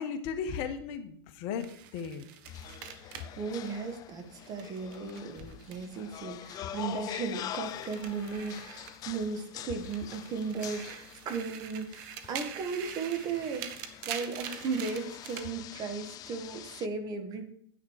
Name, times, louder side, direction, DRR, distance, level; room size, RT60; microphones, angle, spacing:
voice 1, 0.0-1.7 1.9-2.3 3.3-3.4, left 6 dB, 45° left, 8 dB, 1.3 m, -35 dB
sound 1, 1.6-6.2 6.5-9.4 9.8-15.5, right 9 dB, 50° right, 1.4 m, -44 dB
sound 2, 2.5-16.9, left 12 dB, 30° left, 0.5 m, -45 dB
voice 2, 3.0-12.0 12.3-13.7 14.1-17.4, right 5 dB, 30° right, 7 dB, 1.6 m, -36 dB
9.8 x 8.6 x 4.8 m, 0.64 s
hypercardioid pair, 125°, 13 cm